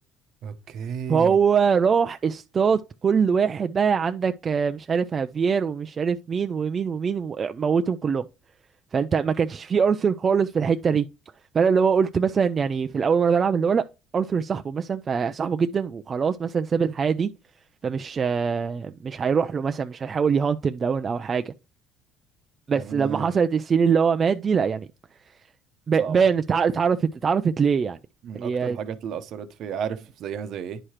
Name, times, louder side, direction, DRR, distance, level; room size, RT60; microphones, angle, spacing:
voice 1, 0.4-1.4 22.8-23.3 26.0-26.2 28.2-30.8, right 7 dB, 60° right, 0.9 m, -33 dB
voice 2, 1.1-8.2 8.9-11.1 11.5-13.8 14.1-17.3 17.8-21.5 22.7-24.9 25.9-28.0 28.3-28.8, right 6 dB, 35° right, 0.4 m, -23 dB
9.8 x 4.8 x 2.9 m
cardioid pair, 100°, 0 cm